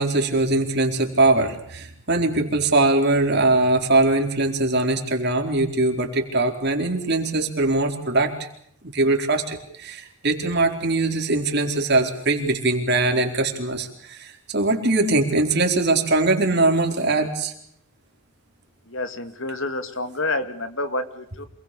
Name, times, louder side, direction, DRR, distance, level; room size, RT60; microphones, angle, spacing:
voice 1, 0.0-8.5 8.8-17.5, right 2 dB, 50° right, 3 dB, 4.4 m, -21 dB
voice 2, 18.9-21.5, left 2 dB, 60° left, 10 dB, 2.4 m, -28 dB
28.0 x 21.0 x 7.0 m, 0.68 s
head